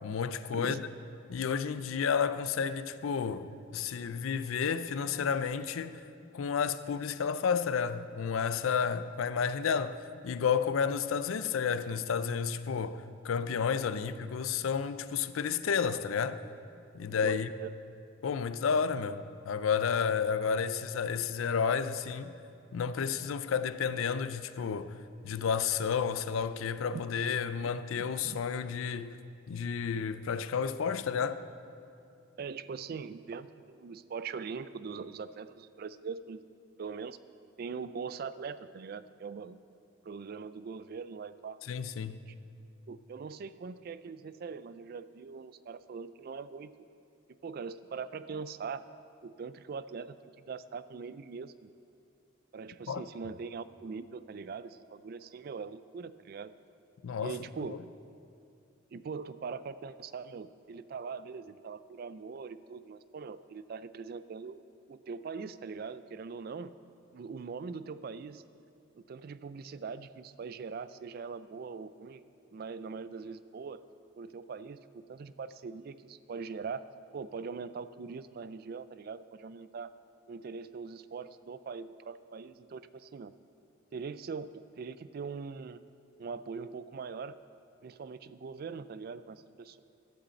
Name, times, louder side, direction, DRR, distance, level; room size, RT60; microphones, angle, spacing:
voice 1, 0.0-0.8 1.3-6.0 6.3-16.4 16.9-17.5 18.2-22.4 22.7-25.0 25.2-29.1 29.5-31.4 41.6-42.2 52.9-53.0 57.0-57.8, left 6 dB, 85° left, 0.4 m, -31 dB
voice 2, 0.5-0.9 17.1-17.7 26.9-27.0 28.0-28.4 32.4-36.5 36.8-37.2 37.6-39.6 40.0-41.6 42.1-42.3 42.9-46.7 47.4-48.8 49.2-50.2 50.5-51.7 52.5-56.5 57.2-57.8 58.9-64.6 64.9-66.7 67.1-68.4 69.0-72.2 72.5-73.8 74.2-76.8 77.1-79.9 80.3-83.3 83.9-85.8 86.2-87.4 87.8-89.8, right 5 dB, 50° right, 0.3 m, -42 dB
11.5 x 5.0 x 7.7 m
head